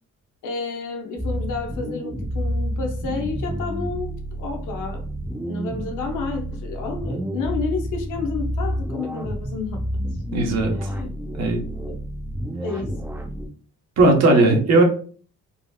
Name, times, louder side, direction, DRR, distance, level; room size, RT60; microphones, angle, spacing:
voice 1, 0.4-5.0 5.4-9.8 10.3-10.4 10.7-11.1 11.9-12.0 12.6-13.0 14.3-14.5, left 4 dB, 85° left, 4 dB, 0.8 m, -30 dB
sound 1, 1.2-13.5, equal, 10° right, 0.7 m, -29 dB
voice 2, 10.3-10.9 11.3-11.6 14.0-14.8, right 2 dB, 60° right, 1 dB, 1.0 m, -17 dB
3.9 x 2.1 x 2.3 m, 0.43 s
cardioid pair, 90°, 30 cm